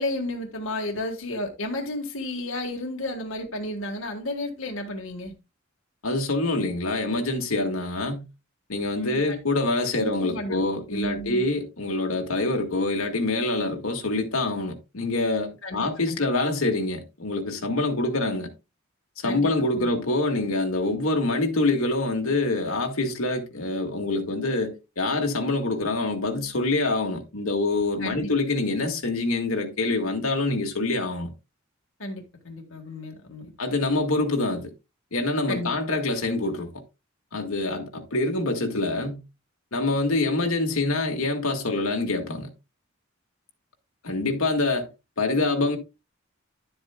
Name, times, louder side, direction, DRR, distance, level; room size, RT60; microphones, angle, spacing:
voice 1, 0.0-5.3 8.9-9.4 9.9-10.6 10.9-11.4 15.6-16.3 19.2-19.5 19.7-19.9 28.0-28.3 32.0-33.5 35.5-35.7, left 1 dB, 70° left, 1.6 m, -32 dB
voice 2, 6.0-8.2 8.7-18.5 19.2-31.3 33.6-34.7 35.1-36.8 37.3-39.2 39.7-42.5 44.0-44.9 45.2-45.8, left 2 dB, 90° left, 1.8 m, -25 dB
11.5 x 8.0 x 2.3 m
head